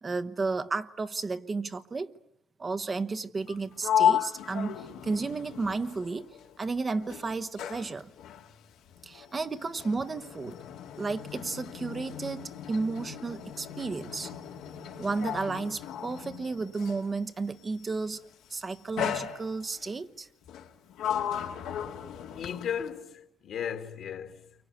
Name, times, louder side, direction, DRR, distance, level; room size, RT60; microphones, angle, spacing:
voice 1, 0.0-2.1 2.6-8.1 9.0-10.6 11.0-14.3 15.0-18.2 18.5-20.3, right 3 dB, 30° right, 1.1 m, -33 dB
Sliding door, 3.4-6.7 7.0-17.1 18.0-18.3 19.0-19.9 20.5-23.0, left 9 dB, 85° left, 2.5 m, -34 dB
voice 2, 22.4-24.5, left 8 dB, 65° left, 2.5 m, -36 dB
29.5 x 24.5 x 8.1 m
cardioid pair, 85°, 0 cm